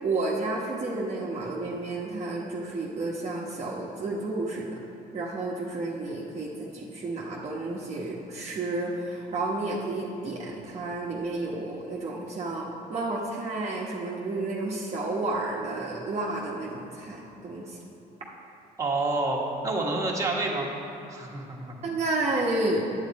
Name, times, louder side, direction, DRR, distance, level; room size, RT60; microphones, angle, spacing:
voice 1, 0.0-4.7 5.1-17.8 21.8-22.8, right 2 dB, 40° right, -4 dB, 1.2 m, -31 dB
voice 2, 18.8-20.7 21.1-21.8, right 2 dB, 20° right, -3 dB, 1.6 m, -28 dB
9.1 x 8.9 x 4.1 m, 3.0 s
cardioid pair, 110°, 17 cm